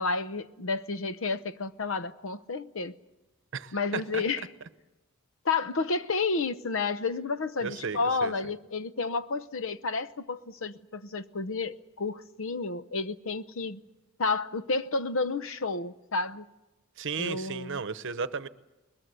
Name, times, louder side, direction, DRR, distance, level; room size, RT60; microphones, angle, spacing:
voice 1, 0.0-2.9 3.7-4.4 5.4-13.8 14.2-16.5 17.2-17.8, left 4 dB, 65° left, 0.8 m, -31 dB
voice 2, 3.5-4.2 7.6-8.3 17.0-18.5, right 5 dB, 60° right, 0.9 m, -34 dB
21.5 x 20.5 x 8.2 m
head